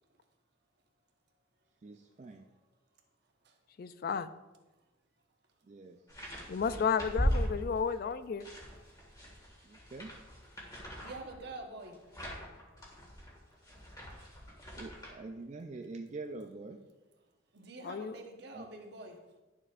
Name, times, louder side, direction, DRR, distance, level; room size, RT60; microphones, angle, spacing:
voice 1, 1.8-2.5 5.6-6.0 9.6-10.1 14.8-16.8 18.5-18.7, right 3 dB, 35° right, 4 dB, 0.4 m, -45 dB
voice 2, 3.8-4.3 6.5-8.5 17.8-18.2, left 6 dB, 50° left, 13 dB, 0.3 m, -32 dB
sound 1, 6.1-8.0 8.4-15.1, equal, 20° left, 1.8 m, -38 dB
voice 3, 11.0-12.0 17.5-19.2, right 2 dB, 55° right, 3 dB, 1.1 m, -46 dB
11.0 x 6.7 x 2.5 m, 1.2 s
head